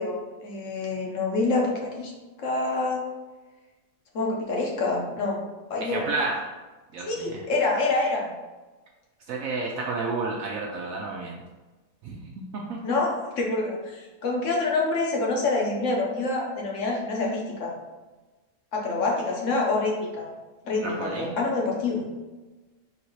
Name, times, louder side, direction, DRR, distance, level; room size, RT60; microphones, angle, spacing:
voice 1, 0.0-2.1 2.4-3.0 4.1-5.4 5.7-6.1 7.0-8.3 12.8-17.7 18.7-20.3 20.6-22.0, left 3 dB, 55° left, -1 dB, 1.1 m, -26 dB
voice 2, 5.8-6.5 6.9-7.4 9.3-11.4 12.0-12.8 20.8-21.4, right 3 dB, 70° right, -1 dB, 0.9 m, -31 dB
3.9 x 2.7 x 4.5 m, 1.2 s
omnidirectional pair, 1.7 m